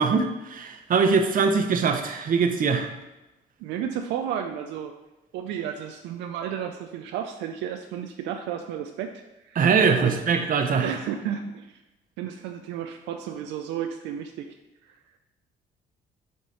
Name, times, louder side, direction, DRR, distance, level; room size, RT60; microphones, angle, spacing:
voice 1, 0.0-2.9 9.6-11.0, right 5 dB, 50° right, 6 dB, 0.8 m, -22 dB
voice 2, 3.6-4.9 5.3-9.6 10.0-10.1 10.8-11.8 12.2-14.6, right 9 dB, 85° right, 5 dB, 0.5 m, -32 dB
7.0 x 3.0 x 4.8 m, 0.98 s
supercardioid pair, 75°, 18 cm